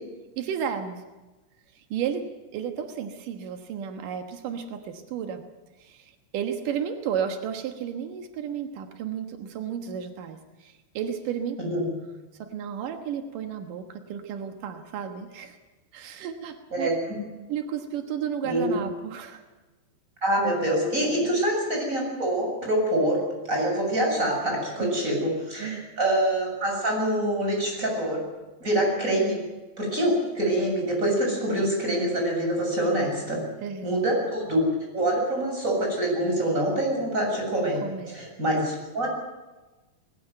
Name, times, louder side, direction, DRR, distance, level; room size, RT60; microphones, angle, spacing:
voice 1, 0.4-1.0 1.7-5.4 5.8-11.9 12.4-15.6 15.9-16.9 17.5-19.4 21.2-21.3 24.8-25.0 25.6-25.8 33.6-34.0 37.8-38.3, right 8 dB, 85° right, 6 dB, 1.8 m, -33 dB
voice 2, 18.4-18.8 20.2-23.2 23.5-28.2 28.6-29.4 29.8-33.4 33.8-34.6 34.9-37.8 38.1-39.1, right 1 dB, 15° right, 0 dB, 7.4 m, -25 dB
20.0 x 19.0 x 9.3 m, 1.2 s
omnidirectional pair, 6.0 m